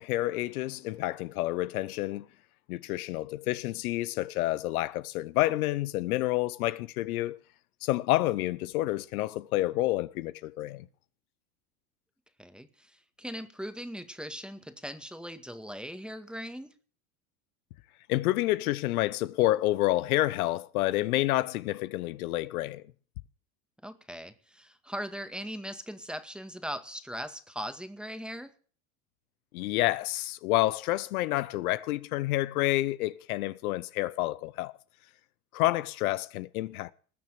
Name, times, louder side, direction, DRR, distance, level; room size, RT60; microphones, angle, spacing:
voice 1, 0.0-2.3 2.7-7.4 7.8-10.8 18.1-22.8 29.5-34.7 35.5-36.9, left 17 dB, 80° left, 0.8 m, -29 dB
voice 2, 12.4-12.9 13.2-16.7 23.8-28.5, equal, ahead, 1.9 m, -39 dB
20.0 x 6.8 x 8.4 m
hypercardioid pair, 90°, 43 cm